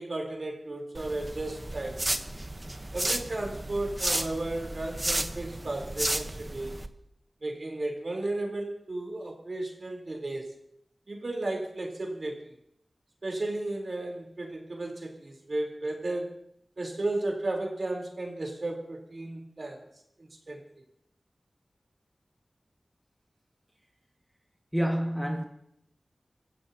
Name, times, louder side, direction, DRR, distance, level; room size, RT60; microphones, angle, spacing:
voice 1, 0.0-2.1 2.9-6.7 7.4-10.5 11.1-12.4 13.2-16.3 16.8-19.8 20.2-20.6, right 2 dB, 60° right, 3.9 m, -34 dB
sound 1, 0.9-6.9, right 1 dB, 30° right, 1.0 m, -33 dB
voice 2, 24.7-25.4, equal, 5° right, 1.9 m, -28 dB
25.0 x 15.0 x 2.9 m
wide cardioid pair, 50°, 0 cm